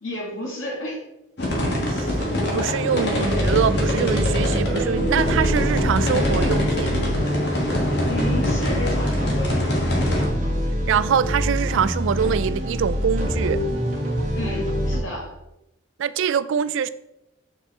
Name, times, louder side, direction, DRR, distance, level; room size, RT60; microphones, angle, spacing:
voice 1, 0.0-1.0 8.1-9.8 14.4-15.3, left 1 dB, 75° left, 2.2 m, -31 dB
sound 1, 1.4-10.2, left 1 dB, 55° left, 1.4 m, -25 dB
sound 2, 2.0-15.0, equal, 40° right, 1.5 m, -25 dB
voice 2, 2.5-6.9 10.9-13.6 16.0-16.9, right 7 dB, 70° right, 0.3 m, -24 dB
6.7 x 4.9 x 3.6 m
head